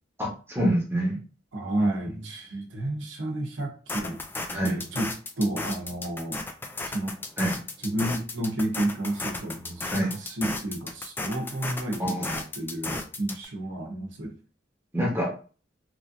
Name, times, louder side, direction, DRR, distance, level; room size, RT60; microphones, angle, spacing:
voice 1, 0.2-1.2 4.5-4.8 7.4-7.6 9.9-10.1 12.0-12.3 14.9-15.3, equal, 15° right, -2 dB, 1.0 m, -26 dB
voice 2, 1.5-4.2 4.6-6.4 6.9-7.2 7.8-14.3, right 1 dB, 90° right, 3 dB, 0.8 m, -31 dB
sound 1, 3.9-13.5, left 2 dB, 10° left, 0.3 m, -34 dB
3.0 x 2.6 x 2.5 m, 0.38 s
head